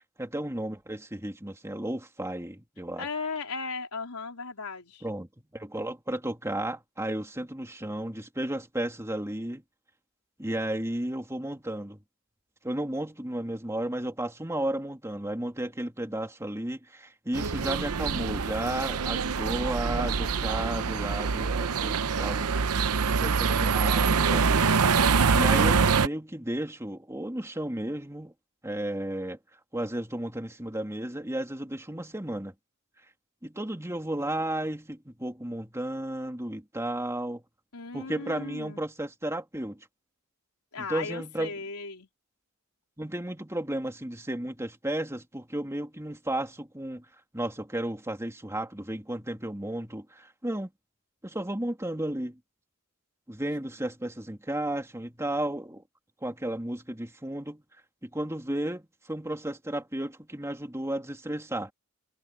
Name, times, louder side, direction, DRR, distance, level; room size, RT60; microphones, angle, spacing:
voice 1, 0.2-3.1 5.0-9.6 10.4-12.0 12.6-22.5 23.2-28.3 28.6-29.4 29.7-32.5 33.4-37.4 37.9-39.9 40.9-41.5 43.0-47.0 47.3-50.7 51.2-52.4 53.3-55.8 56.2-57.6 58.0-58.8 59.1-61.7, right 1 dB, 15° right, 2.8 m, -33 dB
voice 2, 3.0-5.0 37.7-38.8 40.7-42.1, left 4 dB, 85° left, 4.0 m, -36 dB
sound 1, 17.3-26.1, right 5 dB, 80° right, 0.7 m, -25 dB
head